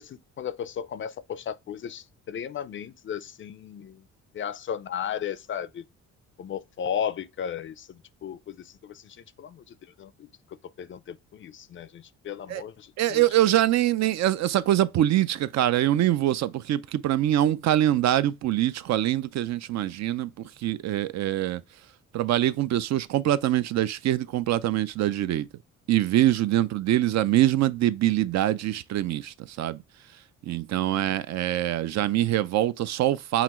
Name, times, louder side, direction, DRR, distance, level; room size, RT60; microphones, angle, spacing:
voice 1, 0.0-4.0 4.3-5.8 6.4-9.6 10.0-10.3 10.8-13.2, left 8 dB, 40° left, 0.4 m, -35 dB
voice 2, 13.0-21.6 22.1-25.5 25.9-29.8 30.4-33.4, right 13 dB, 60° right, 0.4 m, -24 dB
5.7 x 2.4 x 2.9 m
cardioid pair, 90°, 30 cm